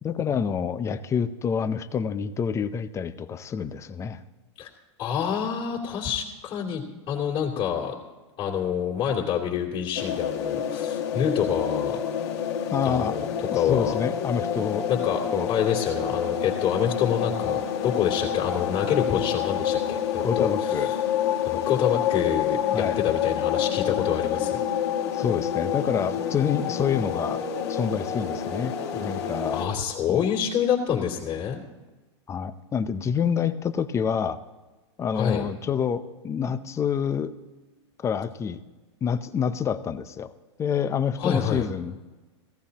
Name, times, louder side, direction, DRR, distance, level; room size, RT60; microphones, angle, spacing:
voice 1, 0.0-4.2 12.7-13.2 13.5-14.9 15.3-15.5 20.2-20.9 22.7-23.0 25.1-27.4 27.7-29.6 30.1-30.3 32.3-34.4 35.0-37.3 38.0-38.6 39.0-40.3 40.6-42.0, left 7 dB, 20° left, 12 dB, 0.6 m, -27 dB
voice 2, 5.0-7.9 8.4-12.0 12.8-13.9 14.9-15.2 15.5-20.8 21.4-24.6 29.5-31.6 35.1-35.4 41.2-41.7, left 8 dB, 35° left, -6 dB, 2.7 m, -27 dB
sound 1, 10.0-29.7, left 9 dB, 65° left, 2.1 m, -28 dB
17.5 x 15.0 x 2.9 m, 1.2 s
hypercardioid pair, 125°, 15 cm